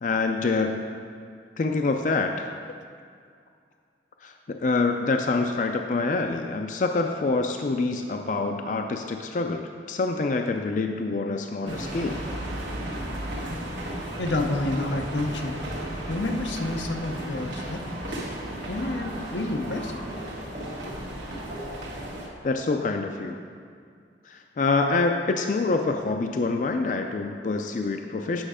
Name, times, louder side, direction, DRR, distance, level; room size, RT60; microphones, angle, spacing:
voice 1, 0.0-0.8 1.6-2.5 4.2-12.3 22.4-23.4 24.3-28.4, left 3 dB, 45° left, 4 dB, 0.4 m, -26 dB
sound 1, 11.7-22.3, right 1 dB, 85° right, 1.5 m, -34 dB
voice 2, 14.2-15.6 16.1-18.0 18.7-20.0, left 2 dB, 85° left, 4 dB, 0.7 m, -29 dB
8.7 x 5.7 x 4.9 m, 2.2 s
head